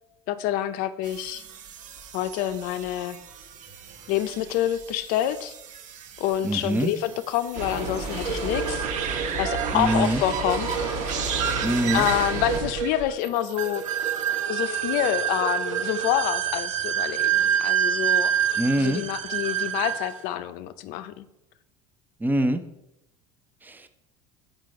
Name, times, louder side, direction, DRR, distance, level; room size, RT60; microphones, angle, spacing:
voice 1, 0.3-1.4 2.1-3.2 4.1-5.5 6.2-8.9 9.4-10.8 11.9-13.8 14.5-18.3 18.8-21.3, left 12 dB, 65° left, 12 dB, 0.6 m, -27 dB
sound 1, 1.0-14.5, right 7 dB, 50° right, 0.9 m, -37 dB
voice 2, 6.4-6.9 9.7-10.2 11.6-12.1 18.6-19.0 22.2-22.6 23.6-23.9, right 1 dB, 10° right, 9 dB, 0.6 m, -24 dB
sound 2, 7.5-12.6, right 2 dB, 65° right, 1.8 m, -31 dB
sound 3, 8.2-20.2, right 9 dB, 90° right, 0.5 m, -27 dB
7.5 x 5.2 x 4.7 m, 0.88 s
hypercardioid pair, 80°, 16 cm